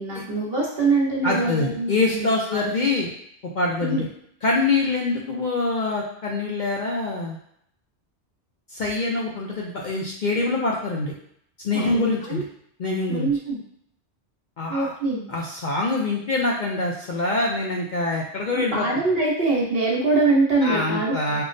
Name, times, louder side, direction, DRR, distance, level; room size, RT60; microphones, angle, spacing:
voice 1, 0.0-2.7 3.8-4.0 11.7-12.4 13.1-13.6 14.7-15.3 18.5-21.4, right 3 dB, 60° right, -3 dB, 1.2 m, -24 dB
voice 2, 1.2-3.1 3.5-4.1 4.4-7.4 8.7-11.1 11.6-12.4 12.8-13.3 14.6-14.9 15.3-18.9 20.6-21.4, left 3 dB, 55° left, -3 dB, 0.6 m, -25 dB
5.6 x 2.1 x 2.5 m, 0.69 s
omnidirectional pair, 1.2 m